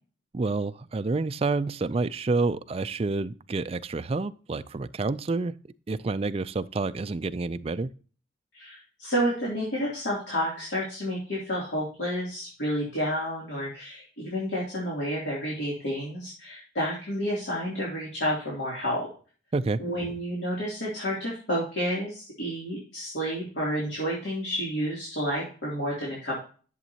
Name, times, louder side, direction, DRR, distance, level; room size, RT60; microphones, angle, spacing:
voice 1, 0.3-5.5 5.9-7.9 19.5-19.8, right 3 dB, 30° right, 12 dB, 0.3 m, -28 dB
voice 2, 8.5-19.1 19.8-26.4, equal, 65° left, -5 dB, 2.9 m, -30 dB
11.0 x 7.0 x 2.8 m, 0.40 s
head